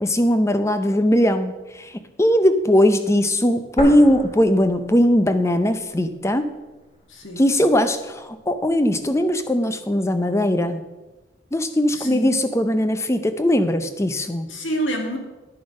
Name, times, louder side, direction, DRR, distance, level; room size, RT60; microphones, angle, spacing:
voice 1, 0.0-6.4 7.4-10.8 11.5-14.5, left 1 dB, 15° left, 10 dB, 0.6 m, -19 dB
sound 1, 3.8-5.7 6.0-6.1 6.8-7.8, equal, 35° left, 2.8 m, -33 dB
voice 2, 7.1-7.4 11.9-12.3 14.5-15.2, right 1 dB, 80° left, 3 dB, 2.0 m, -28 dB
11.0 x 6.9 x 5.3 m, 1.1 s
head